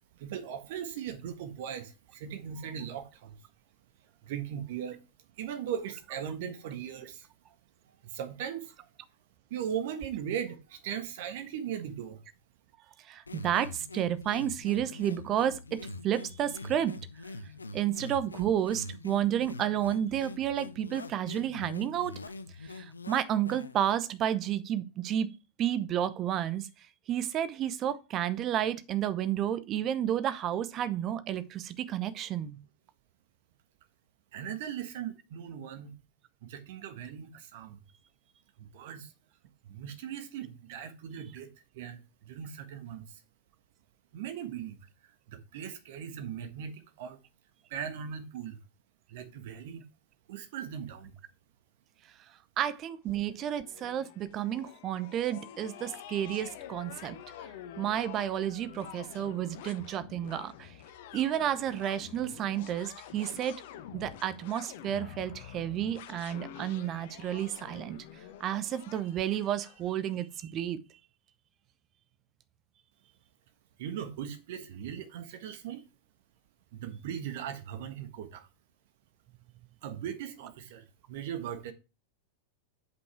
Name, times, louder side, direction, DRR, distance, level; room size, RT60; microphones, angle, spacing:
voice 1, 0.1-3.4 4.2-5.0 5.4-7.3 8.0-8.7 9.5-12.2 34.3-36.0 36.4-37.8 38.6-39.1 39.6-41.5 41.7-43.0 44.1-44.8 45.3-47.2 47.7-48.6 49.1-49.8 50.3-51.1 73.8-75.9 76.7-78.5 79.8-81.7, right 8 dB, 50° right, 1.5 m, -39 dB
voice 2, 13.1-15.6 16.0-17.0 17.7-22.1 22.6-25.3 25.6-26.7 27.1-32.6 52.6-57.2 57.8-60.7 61.1-63.6 63.9-68.0 68.4-70.8, right 10 dB, 35° right, 0.8 m, -31 dB
sound 1, 13.3-23.9, left 3 dB, 80° left, 0.7 m, -44 dB
sound 2, 53.1-70.2, left 10 dB, 50° left, 1.0 m, -48 dB
8.1 x 5.5 x 4.7 m
figure-of-eight pair, 90°, 0 cm